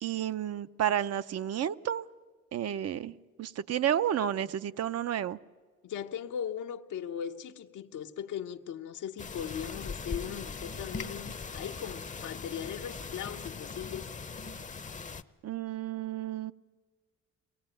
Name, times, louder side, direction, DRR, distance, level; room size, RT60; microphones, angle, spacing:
voice 1, 0.0-2.1 2.5-5.4 15.4-16.5, right 10 dB, 55° right, 0.7 m, -31 dB
voice 2, 5.8-14.1, left 9 dB, 80° left, 1.2 m, -39 dB
sound 1, 9.2-15.2, left 4 dB, 25° left, 0.7 m, -40 dB
23.0 x 18.5 x 9.1 m
cardioid pair, 90°, 30 cm